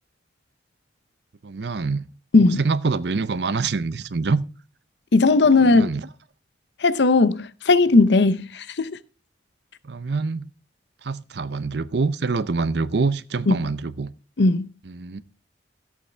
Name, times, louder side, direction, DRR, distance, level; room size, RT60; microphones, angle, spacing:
voice 1, 1.4-2.0 2.6-4.4 5.6-6.1 9.8-10.5 11.0-14.1 14.9-15.2, right 4 dB, 60° right, 0.6 m, -25 dB
voice 2, 5.1-5.9 6.8-8.9 13.5-13.6 14.4-14.7, left 3 dB, 65° left, 0.7 m, -17 dB
13.5 x 8.4 x 3.3 m
head